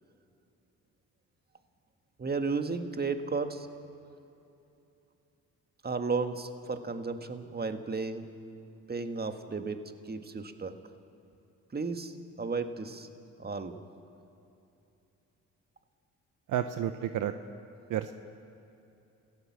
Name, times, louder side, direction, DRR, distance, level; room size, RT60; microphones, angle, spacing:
voice 1, 2.2-3.7 5.8-8.3 8.9-10.8 11.7-13.1 13.4-13.8, right 4 dB, 30° right, 7 dB, 1.8 m, -34 dB
voice 2, 16.5-17.3 17.9-18.1, right 10 dB, 65° right, 9 dB, 0.9 m, -31 dB
26.5 x 16.0 x 7.4 m, 2.9 s
supercardioid pair, 65°, 34 cm